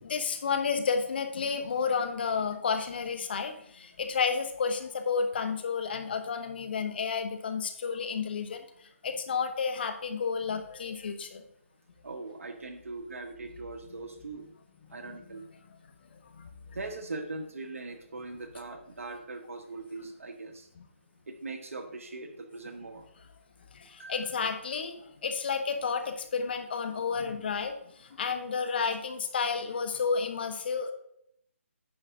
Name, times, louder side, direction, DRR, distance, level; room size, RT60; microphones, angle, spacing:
voice 1, 0.0-8.6 9.0-11.4 16.3-16.5 20.8-20.9 23.7-27.7 28.0-30.9, left 5 dB, 45° left, 8 dB, 1.0 m, -31 dB
voice 2, 12.0-14.4 14.9-15.5 16.7-20.7 21.3-23.0 24.0-24.4, right 3 dB, 70° right, 6 dB, 1.1 m, -40 dB
9.7 x 5.6 x 3.7 m, 0.74 s
hypercardioid pair, 160°, 8 cm